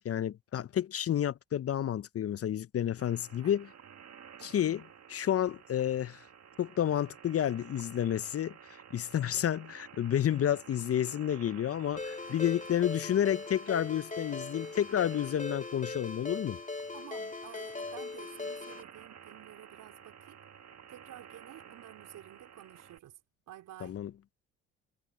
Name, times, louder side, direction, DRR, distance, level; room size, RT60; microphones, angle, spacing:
voice 1, 0.0-3.7 4.4-4.8 5.1-6.3 6.6-16.6 23.8-24.1, left 10 dB, 45° left, 0.8 m, -30 dB
sound 1, 3.0-23.0, right 8 dB, 50° right, 2.3 m, -53 dB
Ringtone, 12.0-18.8, left 3 dB, 25° left, 2.6 m, -40 dB
voice 2, 12.3-12.6 16.9-20.4 20.9-23.2 23.5-24.0, right 13 dB, 65° right, 4.4 m, -51 dB
hypercardioid pair, 55°, 34 cm